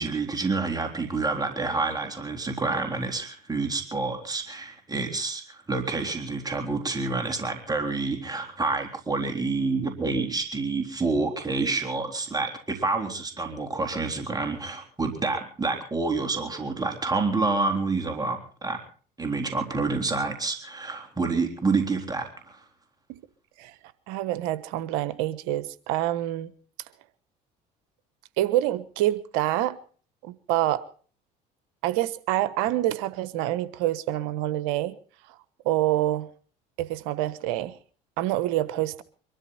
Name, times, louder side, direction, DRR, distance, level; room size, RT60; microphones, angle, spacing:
voice 1, 0.0-18.8 19.2-22.6, right 3 dB, 20° right, 4 dB, 3.7 m, -28 dB
voice 2, 24.1-26.5 28.4-29.8 30.2-30.8 31.8-34.9 35.6-36.3 36.8-37.8 38.2-39.0, right 14 dB, 80° right, 16 dB, 1.1 m, -26 dB
23.5 x 13.0 x 4.2 m, 0.42 s
supercardioid pair, 75°, 20 cm